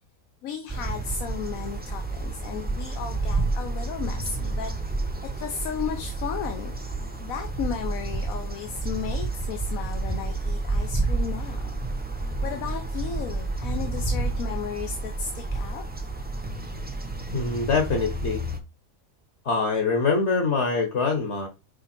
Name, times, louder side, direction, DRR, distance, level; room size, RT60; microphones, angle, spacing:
voice 1, 0.4-4.7 5.3-6.7 7.2-11.7 12.4-15.8, left 7 dB, 80° left, 1.2 m, -34 dB
sound 1, 0.7-18.6, right 2 dB, 10° right, 0.8 m, -30 dB
voice 2, 17.3-18.4 19.4-21.5, left 4 dB, 55° left, 1.5 m, -24 dB
5.4 x 5.0 x 4.4 m
omnidirectional pair, 1.4 m